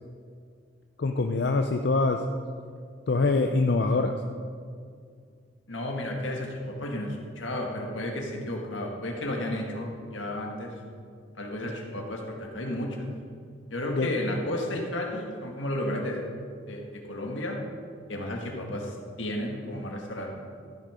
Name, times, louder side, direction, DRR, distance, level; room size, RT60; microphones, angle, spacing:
voice 1, 1.0-2.2 3.1-4.2 13.9-14.1, left 3 dB, 55° left, 5 dB, 0.5 m, -24 dB
voice 2, 5.7-10.7 11.3-13.1 13.7-16.2 16.7-17.6 18.1-20.3, left 1 dB, 80° left, 1 dB, 1.7 m, -33 dB
13.5 x 6.5 x 5.0 m, 2.2 s
head